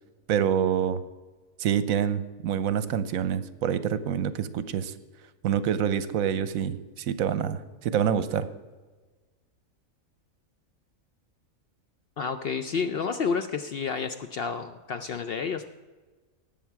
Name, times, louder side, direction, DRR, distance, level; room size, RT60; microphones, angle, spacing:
voice 1, 0.3-1.0 1.6-4.9 5.4-8.5, right 8 dB, 80° right, 14 dB, 1.1 m, -26 dB
voice 2, 12.2-15.7, left 5 dB, 60° left, 8 dB, 0.6 m, -30 dB
18.5 x 7.3 x 4.6 m, 1.3 s
omnidirectional pair, 1.5 m